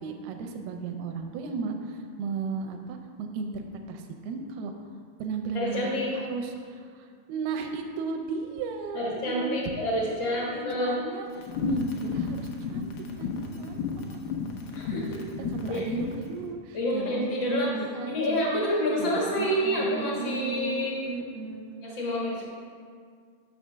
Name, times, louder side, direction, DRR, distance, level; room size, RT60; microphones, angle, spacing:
voice 1, 0.0-4.7 5.2-14.2 15.3-18.6 19.0-19.1 19.4-21.7, right 4 dB, 85° right, 4 dB, 2.6 m, -35 dB
voice 2, 5.5-6.1 8.9-10.9 14.7-15.2 15.7-15.9 16.7-17.7 18.1-21.0 21.8-22.4, equal, 65° left, -4 dB, 1.1 m, -28 dB
sound 1, 11.4-16.2, left 5 dB, 85° left, 2.8 m, -33 dB
7.1 x 6.4 x 5.5 m, 2.1 s
omnidirectional pair, 4.4 m